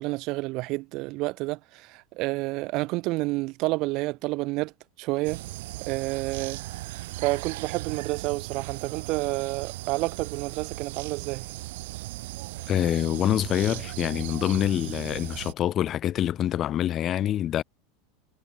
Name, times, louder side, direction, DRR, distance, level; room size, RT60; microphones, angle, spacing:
voice 1, 0.0-4.7 5.0-5.4 5.9-6.6 7.2-11.5, right 22 dB, 50° right, 3.1 m, -29 dB
sound 1, 5.2-15.5, right 19 dB, 70° right, 5.3 m, -37 dB
voice 2, 12.7-17.6, left 11 dB, 30° left, 3.7 m, -26 dB
supercardioid pair, 145°, 0 cm